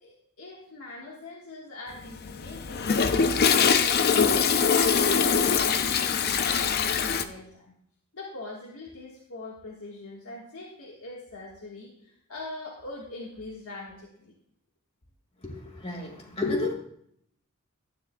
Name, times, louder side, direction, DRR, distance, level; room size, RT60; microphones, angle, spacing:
voice 1, 0.0-4.5 4.9-7.7 8.1-14.3, left 2 dB, 85° left, -3 dB, 1.5 m, -42 dB
Toilet flush, 2.0-7.2, left 6 dB, 50° left, 0.5 m, -23 dB
voice 2, 15.4-16.7, left 2 dB, 30° left, 1 dB, 2.0 m, -31 dB
12.5 x 9.3 x 2.2 m, 0.70 s
head